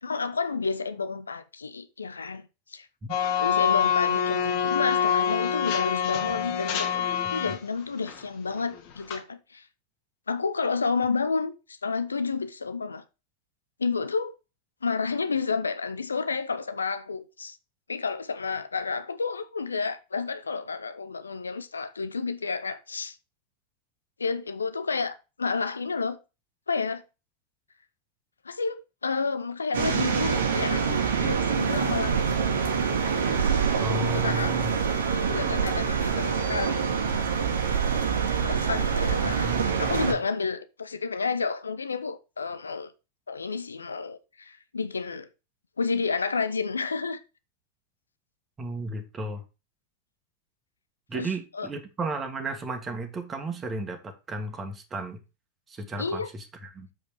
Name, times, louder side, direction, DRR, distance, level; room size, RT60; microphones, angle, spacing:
voice 1, 0.0-2.4 2.7-2.9 3.4-9.7 10.3-13.0 13.8-14.3 14.8-17.6 17.9-23.2 24.2-26.2 26.7-27.0 28.4-32.2 34.1-34.5 35.1-36.8 38.4-42.9 43.3-45.3 45.8-47.2 51.1-51.3 51.5-51.7 56.0-56.3, left 4 dB, 75° left, 0.7 m, -30 dB
sound 1, 3.1-7.6 8.0-8.2 8.5-9.2, left 8 dB, 50° left, 2.0 m, -26 dB
sound 2, 29.7-40.1, right 6 dB, 65° right, 1.4 m, -25 dB
voice 2, 33.8-34.7 48.6-49.4 51.1-55.2 55.7-56.9, right 2 dB, 20° right, 1.7 m, -34 dB
7.5 x 5.2 x 4.7 m
figure-of-eight pair, 90°, 0 cm